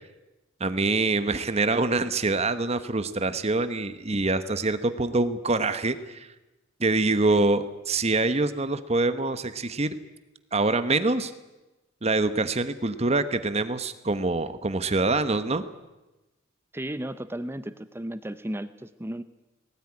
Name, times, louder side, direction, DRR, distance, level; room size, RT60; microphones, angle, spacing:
voice 1, 0.6-6.3 6.8-9.9 10.5-11.3 12.0-15.6, right 3 dB, 30° right, 11 dB, 1.0 m, -25 dB
voice 2, 16.7-19.2, right 1 dB, 10° right, 12 dB, 0.7 m, -34 dB
19.5 x 18.0 x 9.8 m, 1.1 s
head